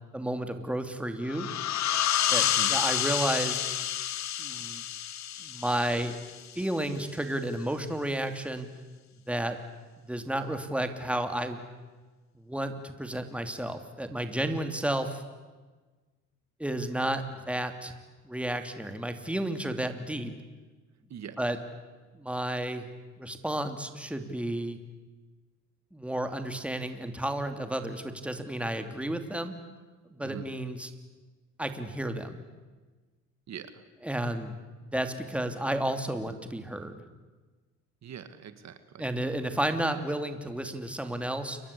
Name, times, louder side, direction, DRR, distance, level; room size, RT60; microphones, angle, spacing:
voice 1, 0.1-1.5 2.3-3.6 4.4-4.8 5.4-6.2 6.6-8.7 9.3-9.6 10.1-11.6 12.3-15.2 16.6-17.9 18.2-20.3 21.4-21.6 22.1-22.9 23.2-24.8 25.9-29.5 30.1-30.9 31.6-32.4 34.0-37.0 39.0-41.6, right 1 dB, 5° right, 7 dB, 2.8 m, -32 dB
sound 1, 1.3-6.6, left 11 dB, 65° left, 1.2 m, -29 dB
voice 2, 2.4-2.7 21.1-21.4 30.2-30.5 33.5-33.8 38.0-39.1, right 8 dB, 60° right, 10 dB, 2.0 m, -43 dB
29.5 x 23.5 x 8.5 m, 1.3 s
cardioid pair, 90°, 30 cm